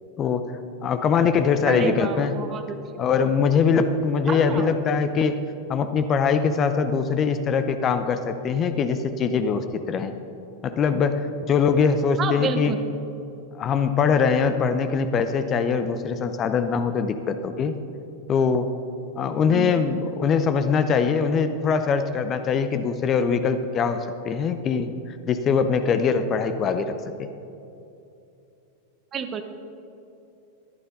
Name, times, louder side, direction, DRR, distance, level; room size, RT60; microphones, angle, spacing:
voice 1, 0.8-2.4 3.0-5.4 5.7-10.1 10.6-12.7 13.5-17.7 18.3-18.7 19.2-26.9 27.2-27.3, left 6 dB, 30° left, 10 dB, 0.6 m, -22 dB
voice 2, 1.7-2.8 4.3-4.7 12.2-12.9 19.5-19.8 29.1-29.4, right 6 dB, 25° right, 8 dB, 0.9 m, -29 dB
13.5 x 11.5 x 4.0 m, 2.8 s
figure-of-eight pair, 90°, 0 cm